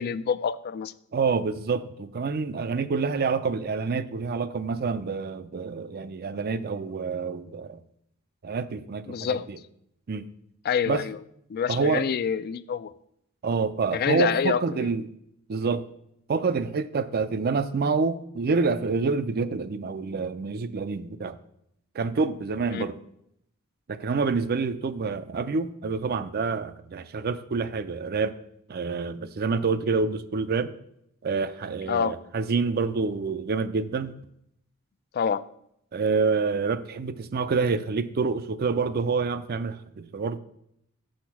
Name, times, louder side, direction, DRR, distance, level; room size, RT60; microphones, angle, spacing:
voice 1, 0.0-0.9 9.1-9.5 10.6-11.2 11.5-12.9 13.9-14.9 22.7-22.9 31.9-32.2 35.1-35.4, left 7 dB, 45° left, 16 dB, 0.3 m, -27 dB
voice 2, 1.1-7.8 8.4-9.6 10.1-10.3 10.9-11.0 11.7-12.1 13.4-15.1 15.5-15.8 16.3-21.4 21.9-23.0 23.9-28.3 28.7-30.7 31.2-34.2 35.9-40.4, right 4 dB, 45° right, 13 dB, 0.4 m, -27 dB
6.4 x 6.1 x 5.9 m, 0.75 s
head